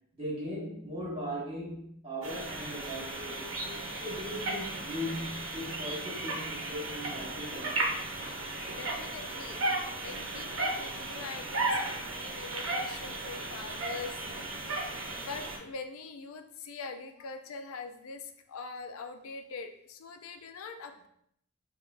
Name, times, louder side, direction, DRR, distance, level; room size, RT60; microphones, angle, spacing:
voice 1, 0.2-7.9, equal, 25° right, -6 dB, 1.4 m, -39 dB
sound 1, 2.2-15.6, right 2 dB, 65° right, 0.8 m, -35 dB
voice 2, 8.7-9.6 10.0-14.1 15.1-21.1, left 4 dB, 80° left, 7 dB, 0.4 m, -43 dB
4.7 x 2.2 x 2.5 m, 0.71 s
head